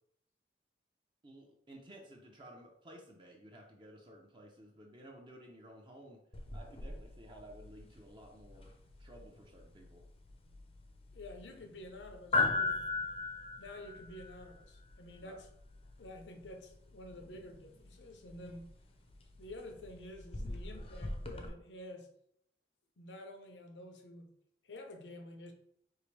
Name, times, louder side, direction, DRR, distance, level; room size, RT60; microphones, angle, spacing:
voice 1, 1.2-6.2 6.5-10.0 15.2-15.4, right 1 dB, 25° right, 0 dB, 0.6 m, -55 dB
sound 1, 6.3-21.5, left 3 dB, 35° left, 0.5 m, -40 dB
voice 2, 11.1-12.8 13.6-15.5 16.0-18.7 19.4-22.1 23.0-24.3 24.6-25.5, left 1 dB, 85° left, 5 dB, 0.7 m, -49 dB
4.7 x 3.0 x 3.2 m, 0.72 s
head